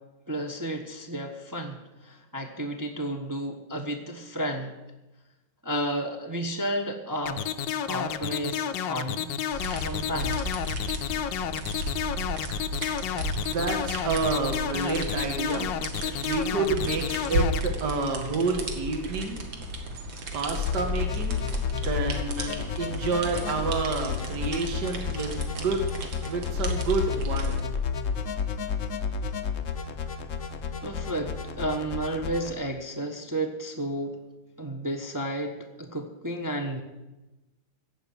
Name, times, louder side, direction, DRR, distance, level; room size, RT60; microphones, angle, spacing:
voice 1, 0.3-4.7 5.6-7.5 7.9-10.4 16.0-16.3 30.8-34.2 34.6-36.8, right 1 dB, 15° right, 2 dB, 0.8 m, -32 dB
sound 1, 7.3-17.7, left 9 dB, 75° left, 1.4 m, -31 dB
sound 2, 9.5-27.6, right 1 dB, 75° right, 2.4 m, -35 dB
voice 2, 13.4-15.7 16.2-19.4 20.3-21.4 21.7-25.8 26.3-27.6, right 3 dB, 60° right, 3 dB, 2.1 m, -29 dB
sound 3, 20.5-32.5, left 6 dB, 55° left, 0.9 m, -31 dB
15.5 x 5.5 x 9.4 m, 1.0 s
omnidirectional pair, 2.1 m